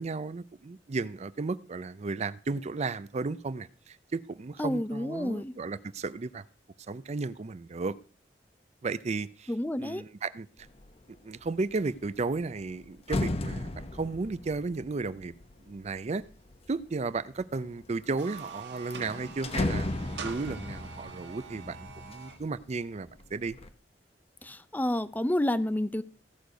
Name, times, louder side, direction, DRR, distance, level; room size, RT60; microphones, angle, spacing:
voice 1, 0.0-6.4 6.9-8.0 8.8-9.5 9.8-10.5 11.2-15.3 15.7-16.2 16.7-19.9 20.2-21.8 22.1-23.6, right 3 dB, 40° right, 0.5 m, -34 dB
voice 2, 4.6-5.5 9.5-10.0 24.4-26.0, left 1 dB, 10° left, 0.5 m, -29 dB
sound 1, 10.7-11.0 11.4-16.8 17.4-18.0 18.4-18.5 18.8-22.7 23.1-23.7, left 2 dB, 35° left, 0.9 m, -36 dB
sound 2, 18.0-22.4, right 5 dB, 80° right, 1.5 m, -44 dB
16.5 x 6.5 x 5.1 m
head